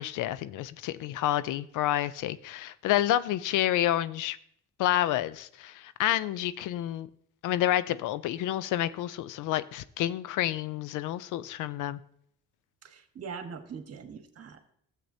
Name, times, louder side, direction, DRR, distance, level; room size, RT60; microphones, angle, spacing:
voice 1, 0.0-4.4 4.8-7.1 7.4-12.0, left 13 dB, 85° left, 16 dB, 0.5 m, -29 dB
voice 2, 12.8-14.7, right 6 dB, 55° right, 6 dB, 1.3 m, -42 dB
13.5 x 7.5 x 2.7 m, 0.66 s
cardioid pair, 90°, 30 cm